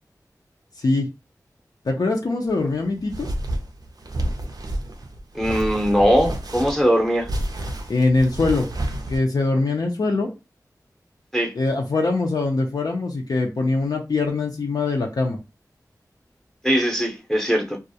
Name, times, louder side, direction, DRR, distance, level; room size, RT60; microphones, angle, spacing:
voice 1, 1.9-3.3 7.9-8.7 9.1-10.3 11.5-15.4, left 3 dB, 70° left, 0.4 m, -22 dB
sound 1, 2.5-9.2, right 1 dB, 65° right, 0.4 m, -29 dB
voice 2, 5.3-7.3 11.3-11.5 16.6-17.8, equal, 5° left, 0.6 m, -20 dB
2.3 x 2.0 x 2.6 m
wide cardioid pair, 70°, 7 cm